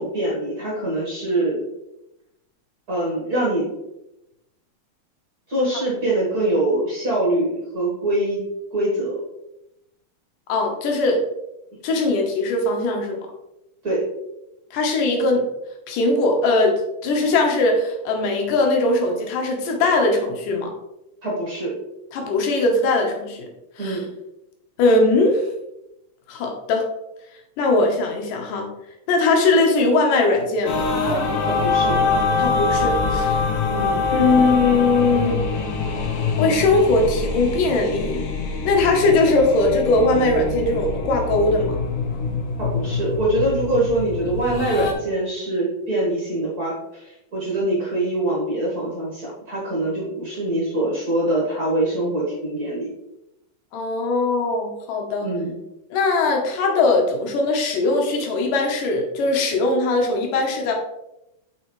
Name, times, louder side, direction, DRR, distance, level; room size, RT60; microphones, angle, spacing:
voice 1, 0.0-1.6 2.9-3.7 5.5-8.4 8.7-9.2 13.8-14.1 21.2-21.7 23.8-24.1 31.5-32.0 33.7-34.0 42.6-52.9 55.2-55.5, right 1 dB, 40° right, -5 dB, 1.6 m, -24 dB
voice 2, 10.5-11.2 11.8-13.3 14.7-15.5 15.9-20.7 22.1-23.5 23.8-24.0 24.8-25.4 26.3-26.9 27.6-28.7 29.1-30.9 32.4-33.4 34.1-35.4 36.4-38.3 38.6-41.8 53.7-55.3 55.9-60.7, left 2 dB, 90° left, 2 dB, 2.8 m, -20 dB
sound 1, 30.7-44.9, left 4 dB, 75° left, 2.3 m, -24 dB
7.7 x 4.8 x 3.2 m, 0.89 s
omnidirectional pair, 3.7 m